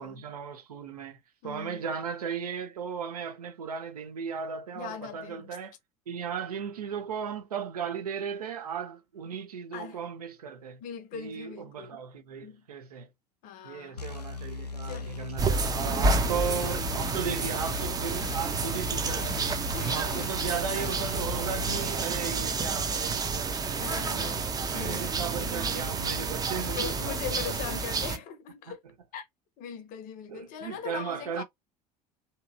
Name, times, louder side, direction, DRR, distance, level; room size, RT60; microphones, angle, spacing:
voice 1, 0.0-5.7 6.1-10.8 11.1-13.1 13.6-19.6 19.9-27.5 30.3-31.4, right 6 dB, 75° right, 0.7 m, -36 dB
voice 2, 1.4-1.9 4.7-5.6 9.7-10.0 10.8-12.0 12.4-12.7 13.4-14.1 14.8-15.2 15.8-16.5 16.9-17.1 19.7-20.3 23.7-25.1 26.7-28.8 29.1-29.3 29.6-31.4, left 8 dB, 45° left, 0.7 m, -41 dB
sound 1, 14.0-21.9, left 4 dB, 85° left, 0.4 m, -38 dB
sound 2, 15.4-28.2, right 4 dB, 20° right, 0.6 m, -30 dB
2.8 x 2.7 x 2.4 m
figure-of-eight pair, 70°, 20 cm